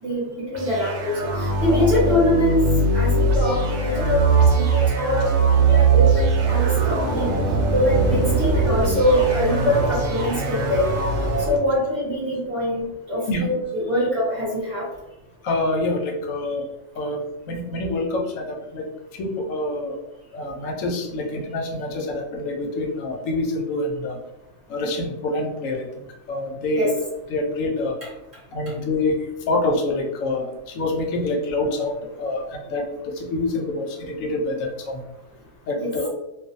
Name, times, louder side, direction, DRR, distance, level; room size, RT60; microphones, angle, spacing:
voice 1, 0.0-2.7 2.9-7.4 7.7-10.9 11.5-14.8 26.7-26.9 35.7-35.9, left 1 dB, 30° right, -7 dB, 0.9 m, -23 dB
sound 1, 0.5-11.6, right 3 dB, 70° right, 0.9 m, -20 dB
voice 2, 15.4-16.6 17.0-17.2 17.5-18.8 19.2-20.0 20.3-24.2 24.7-25.9 26.3-26.9 27.3-28.0 28.5-29.1 29.5-35.0 35.7-36.1, left 2 dB, 90° left, 1 dB, 1.0 m, -26 dB
2.4 x 2.2 x 2.6 m, 0.94 s
omnidirectional pair, 1.3 m